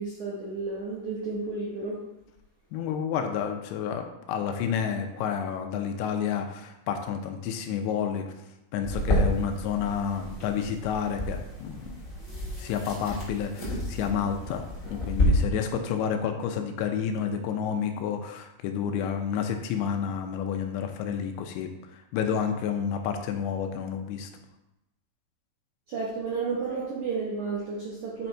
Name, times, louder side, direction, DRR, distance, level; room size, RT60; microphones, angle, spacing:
voice 1, 0.0-2.0 25.9-28.3, right 4 dB, 75° right, -5 dB, 1.7 m, -32 dB
voice 2, 2.7-8.3 8.7-12.0 12.6-14.6 14.9-24.3, left 7 dB, 80° left, 5 dB, 2.9 m, -30 dB
sound 1, 8.8-15.2, left 1 dB, 45° left, 1.0 m, -31 dB
8.3 x 4.1 x 4.5 m, 0.89 s
omnidirectional pair, 5.2 m